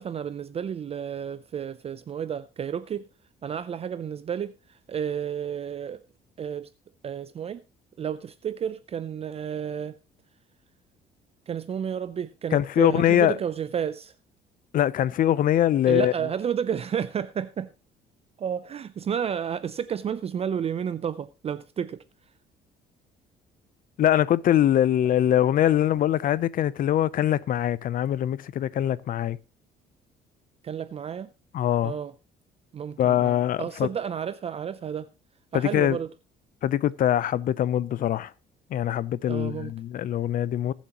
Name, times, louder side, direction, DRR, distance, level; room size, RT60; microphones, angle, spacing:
voice 1, 0.0-3.1 3.4-6.0 6.4-6.7 7.0-7.6 8.0-9.9 11.5-14.1 15.8-17.7 18.4-22.0 30.6-31.3 31.8-32.1 32.7-35.1 35.5-36.1 39.3-39.7, right 8 dB, 35° right, 0.5 m, -31 dB
voice 2, 12.5-13.4 14.7-16.1 24.0-29.4 31.5-31.9 33.0-33.9 35.5-36.0 36.6-38.3 38.7-40.7, left 11 dB, 55° left, 0.7 m, -23 dB
21.5 x 7.4 x 3.0 m
cardioid pair, 110°, 17 cm